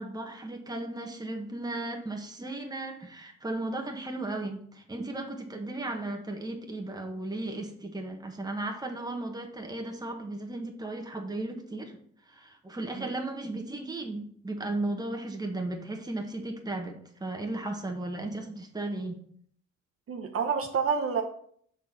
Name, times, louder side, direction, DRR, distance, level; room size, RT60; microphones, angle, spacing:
voice 1, 0.0-12.0 12.3-19.2, right 2 dB, 15° right, 3 dB, 1.3 m, -35 dB
voice 2, 20.1-21.2, right 6 dB, 50° right, 3 dB, 0.9 m, -28 dB
6.0 x 4.2 x 6.0 m, 0.62 s
cardioid pair, 90°, 30 cm